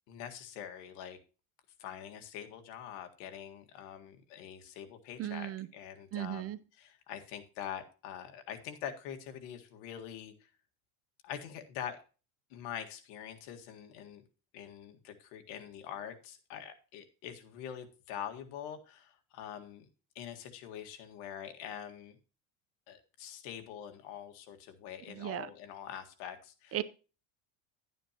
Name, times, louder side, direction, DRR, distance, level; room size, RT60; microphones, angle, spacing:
voice 1, 0.1-1.2 1.8-10.5 11.2-12.0 12.5-14.3 14.5-19.9 20.2-22.2 22.9-26.8, left 9 dB, 75° left, 6 dB, 1.8 m, -44 dB
voice 2, 5.2-5.7 6.1-6.6 25.1-25.5 26.7-26.8, right 13 dB, 35° right, 16 dB, 0.6 m, -36 dB
11.5 x 9.2 x 2.9 m, 0.34 s
cardioid pair, 130°, 42 cm